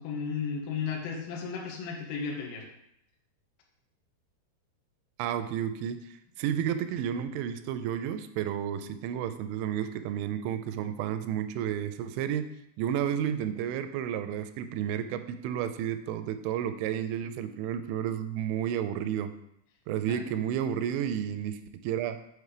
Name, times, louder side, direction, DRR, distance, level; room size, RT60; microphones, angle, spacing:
voice 1, 0.0-2.6 20.1-20.2, left 6 dB, 65° left, -1 dB, 2.3 m, -34 dB
voice 2, 5.2-6.1 6.4-12.5 12.8-19.3 19.9-22.2, right 9 dB, 85° right, 10 dB, 2.9 m, -31 dB
7.9 x 5.4 x 4.9 m, 0.77 s
omnidirectional pair, 5.5 m